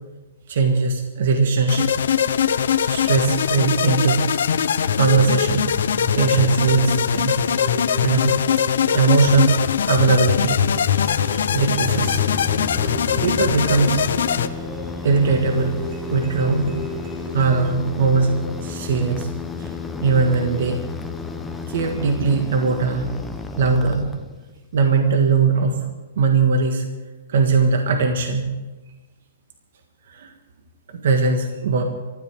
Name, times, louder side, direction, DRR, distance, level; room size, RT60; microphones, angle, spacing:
voice 1, 0.5-1.9 2.8-4.3 5.0-5.7 6.1-7.4 7.6-7.7 8.0-8.4 8.9-9.6 9.9-10.6 11.4-12.2 12.8-12.9 13.2-14.0 15.0-15.8 16.1-16.8 17.3-18.3 18.6-19.3 19.6-19.7 20.0-20.8 21.7-23.1 23.6-24.1 24.7-25.8 26.2-26.8 27.3-28.5 30.1-30.3 30.9-31.8, right 4 dB, 60° right, 4 dB, 1.6 m, -20 dB
sound 1, 1.7-14.5, left 8 dB, 75° left, 0.8 m, -21 dB
sound 2, 5.8-17.8, left 1 dB, 35° right, 5.9 m, -34 dB
sound 3, 11.8-24.6, left 3 dB, 5° left, 0.8 m, -32 dB
24.5 x 13.5 x 3.6 m, 1.2 s
hypercardioid pair, 170°, 0 cm